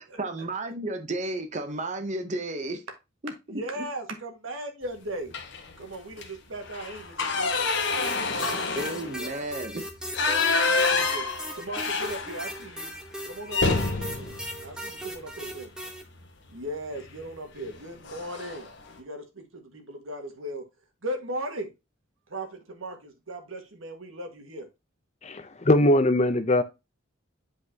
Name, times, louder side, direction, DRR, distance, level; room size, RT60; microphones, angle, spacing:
voice 1, 0.0-2.8 3.2-3.3 3.8-3.9 8.8-9.8, right 2 dB, 35° right, 0.8 m, -32 dB
voice 2, 3.5-5.3 5.8-9.5 10.2-10.5 10.8-11.3 11.6-12.9 13.2-14.3 14.6-15.7 16.5-18.7 19.0-20.6 21.0-21.7 22.3-24.7, right 1 dB, 80° right, 1.7 m, -38 dB
sound 1, 5.3-5.7 6.1-6.3 6.6-12.7 13.0-13.1 13.5-15.6 17.0-17.2 17.6-17.8 18.1-18.7, left 4 dB, 60° left, 1.3 m, -28 dB
sound 2, 8.0-16.0, equal, 5° right, 1.0 m, -38 dB
voice 3, 25.2-26.6, left 1 dB, 30° left, 0.6 m, -21 dB
8.1 x 5.0 x 2.8 m
head